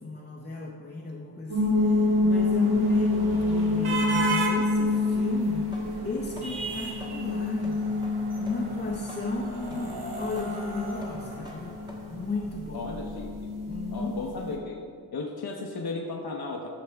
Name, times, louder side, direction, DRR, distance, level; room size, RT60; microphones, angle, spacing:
voice 1, 0.0-5.7 6.0-7.8 8.4-11.8 12.1-12.9 13.7-14.2, left 3 dB, 25° left, -1 dB, 0.7 m, -34 dB
sound 1, 1.5-14.5, left 2 dB, 55° right, 1.5 m, -28 dB
sound 2, 1.7-12.1, right 3 dB, 75° right, 1.3 m, -36 dB
sound 3, 5.6-13.1, equal, 10° right, 1.3 m, -48 dB
voice 2, 12.7-13.3 13.9-14.8 15.1-16.7, left 3 dB, 70° left, 0 dB, 0.8 m, -35 dB
12.5 x 6.8 x 3.4 m, 2.4 s
wide cardioid pair, 135°, 38 cm